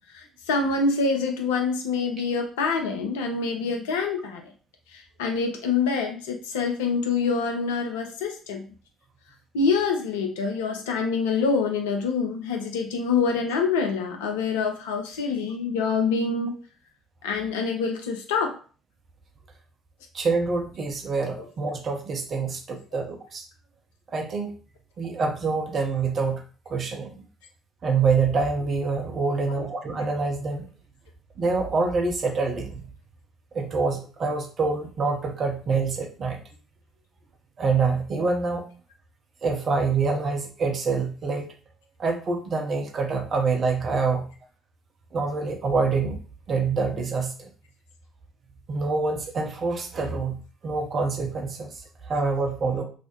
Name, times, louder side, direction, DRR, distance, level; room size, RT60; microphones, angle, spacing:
voice 1, 0.1-4.4 4.9-8.6 9.5-16.6 17.2-18.5 29.3-29.6, left 4 dB, 70° left, 3 dB, 0.5 m, -26 dB
voice 2, 20.1-23.4 24.1-24.5 25.0-27.1 27.8-30.6 31.4-32.8 33.5-36.4 37.6-38.7 39.4-41.5 42.0-44.3 45.1-46.2 46.5-47.5 48.7-50.4 50.6-52.8, right 4 dB, 40° right, 2 dB, 0.6 m, -26 dB
2.4 x 2.0 x 2.8 m, 0.38 s
figure-of-eight pair, 50°, 0 cm